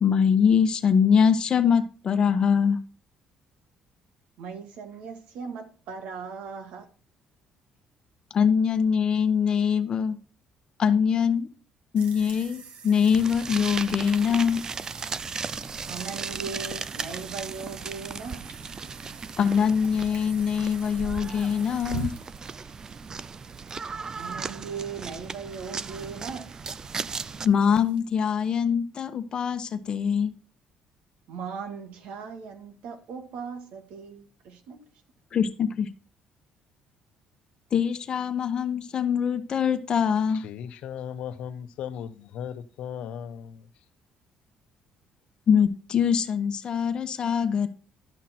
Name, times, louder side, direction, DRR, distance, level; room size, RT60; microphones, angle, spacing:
voice 1, 0.0-2.8 8.3-10.2 10.8-11.5 11.9-14.6 19.4-22.1 27.4-30.3 35.3-35.9 37.7-40.4 45.5-47.7, left 7 dB, 40° left, 1.2 m, -23 dB
voice 2, 4.4-6.9 15.9-18.4 24.2-26.5 31.3-34.8, right 5 dB, 80° right, 1.8 m, -38 dB
sound 1, 12.0-28.0, right 4 dB, 65° right, 1.4 m, -45 dB
sound 2, 13.1-27.5, right 5 dB, 30° right, 0.4 m, -36 dB
voice 3, 40.3-43.7, left 8 dB, 75° left, 0.9 m, -37 dB
12.0 x 6.0 x 4.4 m
cardioid pair, 120°, 2 cm